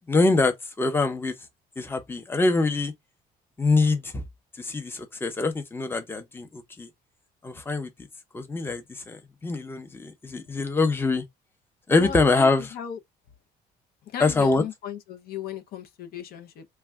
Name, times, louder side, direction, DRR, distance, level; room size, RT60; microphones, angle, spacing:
voice 1, 0.1-1.3 1.8-2.9 3.6-4.2 4.6-6.9 7.4-7.9 8.3-11.2 11.9-12.7 14.2-14.6, left 3 dB, 15° left, 0.6 m, -24 dB
voice 2, 12.0-12.5 12.7-13.0 14.1-16.6, left 9 dB, 65° left, 0.6 m, -35 dB
2.2 x 2.1 x 3.5 m
cardioid pair, 110°, 17 cm